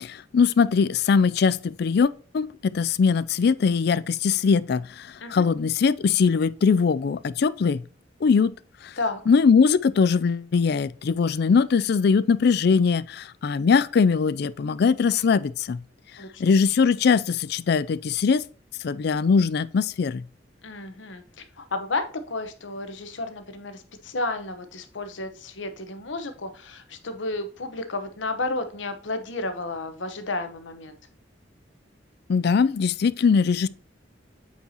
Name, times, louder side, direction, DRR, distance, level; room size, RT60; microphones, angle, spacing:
voice 1, 0.0-7.8 8.2-8.5 8.8-8.9 9.3-15.8 16.4-18.4 18.8-20.2 32.3-33.7, left 5 dB, 60° left, 0.4 m, -21 dB
voice 2, 20.6-31.0, left 2 dB, 85° left, 1.0 m, -32 dB
8.4 x 4.6 x 2.9 m
head